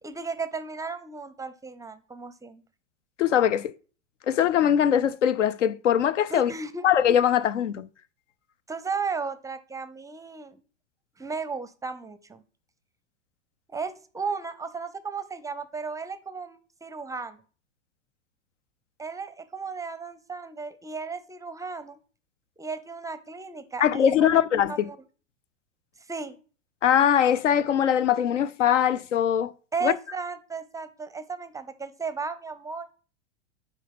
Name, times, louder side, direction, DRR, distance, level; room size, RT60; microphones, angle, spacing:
voice 1, 0.0-2.6 6.3-6.9 8.7-10.6 11.2-12.4 13.7-17.4 19.0-22.0 22.6-24.3 24.7-25.0 26.1-26.4 29.7-32.9, right 4 dB, 10° right, 0.5 m, -35 dB
voice 2, 3.2-3.7 4.3-6.5 6.8-7.9 23.8-24.7 26.8-29.5 29.8-29.9, left 9 dB, 75° left, 0.7 m, -21 dB
9.1 x 4.4 x 5.9 m
hypercardioid pair, 100°, 37 cm